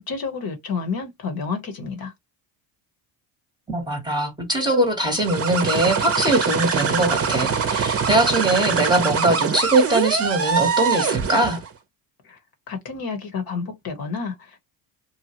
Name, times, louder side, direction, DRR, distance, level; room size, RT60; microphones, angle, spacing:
voice 1, 0.1-2.1 12.2-12.4 12.7-14.6, left 5 dB, 45° left, 1.0 m, -30 dB
voice 2, 3.7-11.6, right 2 dB, 10° right, 1.0 m, -21 dB
sound 1, 5.1-11.7, right 6 dB, 30° right, 0.8 m, -23 dB
2.7 x 2.3 x 2.8 m
supercardioid pair, 95°, 50 cm